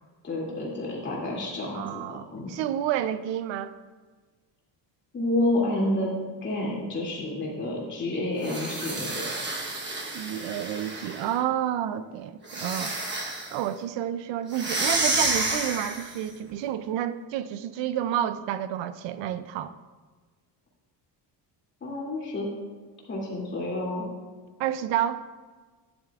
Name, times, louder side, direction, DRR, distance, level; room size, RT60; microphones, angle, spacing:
voice 1, 0.2-2.6 5.1-6.1 6.4-9.2 21.8-22.5 23.1-24.1, left 1 dB, 25° left, -4 dB, 2.5 m, -29 dB
voice 2, 1.7-3.7 10.1-12.9 13.5-19.7 24.6-25.2, right 11 dB, 80° right, 13 dB, 0.6 m, -30 dB
sound 1, 8.4-11.4 12.4-13.6 14.5-16.2, right 2 dB, 25° right, 1.1 m, -30 dB
12.0 x 10.0 x 2.4 m, 1.4 s
cardioid pair, 175°, 44 cm